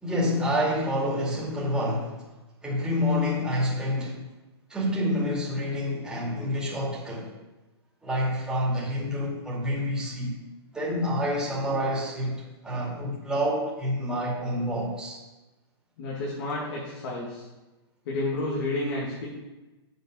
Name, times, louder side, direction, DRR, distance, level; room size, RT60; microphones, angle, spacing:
voice 1, 0.0-2.2 2.6-4.3 4.7-7.3 8.0-10.4 10.7-15.2, equal, 5° right, 2.4 m, -28 dB
voice 2, 16.0-17.4 18.1-19.3, left 2 dB, 60° left, 2.4 m, -30 dB
7.6 x 5.2 x 6.6 m
hypercardioid pair, 135°, 14 cm